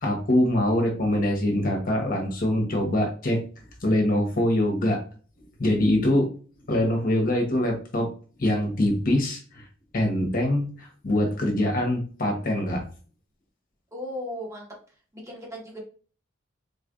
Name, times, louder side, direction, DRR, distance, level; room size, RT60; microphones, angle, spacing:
voice 1, 0.0-3.4 3.8-5.0 5.6-6.3 6.7-8.1 8.4-9.6 9.9-12.8, left 1 dB, 45° left, 2 dB, 1.1 m, -24 dB
voice 2, 13.9-14.7 15.1-15.8, left 1 dB, 15° right, -2 dB, 1.2 m, -36 dB
4.0 x 3.2 x 2.6 m, 0.39 s
head